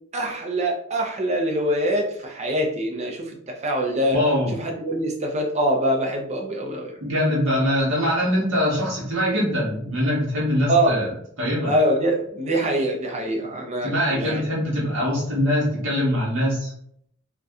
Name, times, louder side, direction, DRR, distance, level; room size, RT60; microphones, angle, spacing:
voice 1, 0.1-4.2 4.5-6.9 10.7-11.0 11.6-14.4, right 1 dB, 35° right, 1 dB, 0.6 m, -24 dB
voice 2, 4.1-4.5 7.0-11.7 13.8-16.7, equal, 65° right, -6 dB, 0.9 m, -23 dB
2.6 x 2.3 x 3.5 m, 0.68 s
head